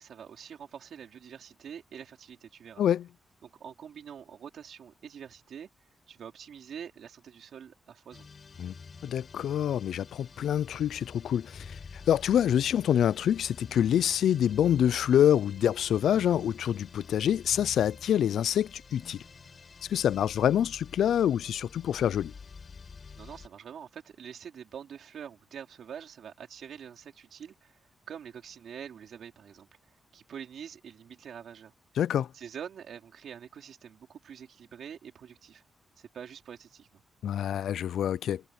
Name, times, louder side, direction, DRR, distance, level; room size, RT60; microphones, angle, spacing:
voice 1, 0.0-2.8 3.4-5.7 6.1-8.3 23.2-27.8 28.1-29.7 30.1-31.7 32.3-35.6 36.0-37.0, right 8 dB, 65° right, 4.2 m, -45 dB
sound 1, 8.1-23.5, left 5 dB, 35° left, 4.4 m, -49 dB
voice 2, 9.0-19.2 19.9-22.3 32.0-32.3 37.2-38.4, left 10 dB, 90° left, 0.4 m, -26 dB
wide cardioid pair, 175°, 0 cm